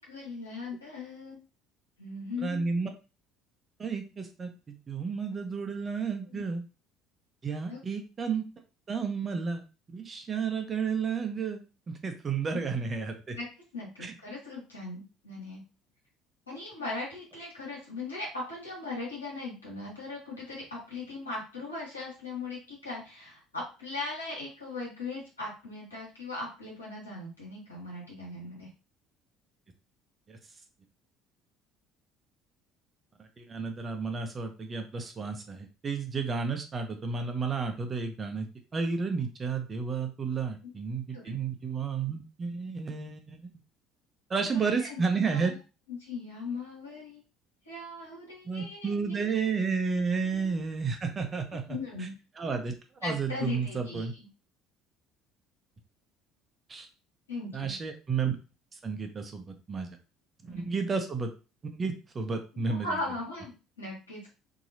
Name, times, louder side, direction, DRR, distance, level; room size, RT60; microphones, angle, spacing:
voice 1, 0.1-1.4 2.0-2.9 6.3-6.4 7.7-7.8 12.5-12.8 13.3-13.5 13.7-15.6 16.5-28.7 41.1-41.3 44.5-45.0 45.3-45.6 45.9-47.2 47.7-49.2 50.3-50.5 51.7-52.1 53.0-54.1 57.3-57.8 60.5-60.7 62.7-64.3, left 3 dB, 90° left, -5 dB, 1.5 m, -39 dB
voice 2, 2.4-2.9 3.8-6.6 7.4-8.5 8.9-9.6 9.9-11.6 11.9-13.4 14.0-14.1 30.3-30.4 33.4-43.5 44.3-45.5 48.4-51.8 52.4-52.7 53.0-54.1 56.7-56.9 57.5-58.4 58.8-59.9 60.5-61.3 61.7-63.0, right 5 dB, 30° right, 5 dB, 0.8 m, -32 dB
2.9 x 2.8 x 2.7 m, 0.31 s
figure-of-eight pair, 60°, 0 cm